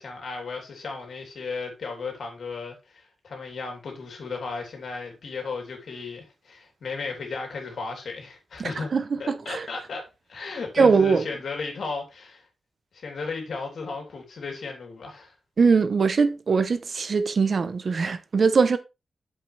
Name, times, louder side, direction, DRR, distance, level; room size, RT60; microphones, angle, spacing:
voice 1, 0.0-8.9 9.2-12.4 12.9-15.3, left 4 dB, 70° left, 3.3 m, -35 dB
voice 2, 8.6-9.7 10.8-11.3 15.6-18.8, right 5 dB, 45° right, 0.8 m, -21 dB
8.0 x 7.4 x 3.4 m
wide cardioid pair, 170°, 0 cm